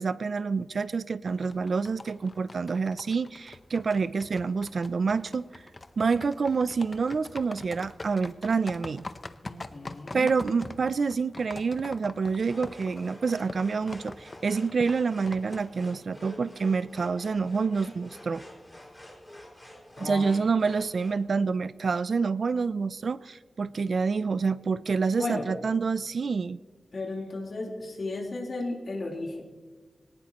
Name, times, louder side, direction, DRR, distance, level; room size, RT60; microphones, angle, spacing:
voice 1, 0.0-5.5 6.0-9.1 10.1-18.4 20.0-26.6, right 5 dB, 60° right, 16 dB, 0.4 m, -27 dB
sound 1, 1.3-16.2, left 2 dB, 30° left, 0.7 m, -43 dB
voice 2, 9.4-10.3 20.0-20.4 25.1-25.5 26.9-29.4, left 2 dB, 55° left, -1 dB, 3.7 m, -34 dB
sound 2, 12.4-21.2, left 1 dB, 10° left, 5.3 m, -48 dB
24.5 x 18.0 x 3.0 m, 1.5 s
wide cardioid pair, 140°, 0 cm